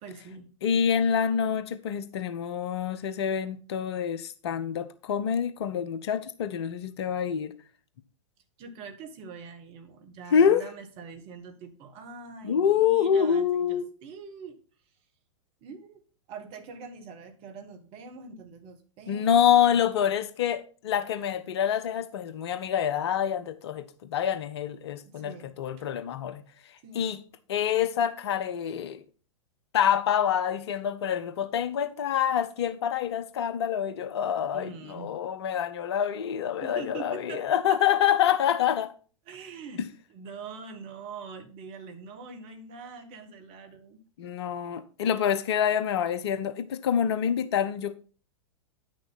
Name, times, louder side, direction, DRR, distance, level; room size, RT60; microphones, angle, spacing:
voice 1, 0.0-0.5 8.6-14.6 15.6-16.0 16.3-19.4 25.1-25.5 26.8-27.1 34.5-35.1 36.6-37.8 39.3-39.8 40.1-44.0, right 5 dB, 35° right, 1.7 m, -43 dB
voice 2, 0.6-7.5 10.3-10.6 12.4-13.9 19.1-26.4 26.9-27.2 27.5-29.0 29.7-38.9 39.8-39.9 44.2-48.0, left 8 dB, 55° left, 0.8 m, -26 dB
9.7 x 6.4 x 4.1 m
figure-of-eight pair, 100°, 17 cm